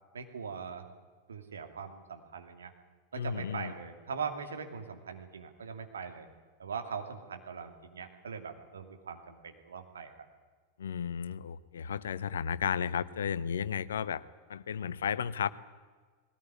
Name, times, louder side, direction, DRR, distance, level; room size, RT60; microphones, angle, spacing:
voice 1, 0.1-0.9 1.3-2.7 3.1-6.3 6.6-10.1, right 6 dB, 70° right, 5 dB, 2.8 m, -41 dB
voice 2, 3.1-3.7 10.8-14.2 14.5-15.5, left 7 dB, 65° left, 17 dB, 0.9 m, -33 dB
20.5 x 18.0 x 9.7 m, 1.5 s
figure-of-eight pair, 90°, 0 cm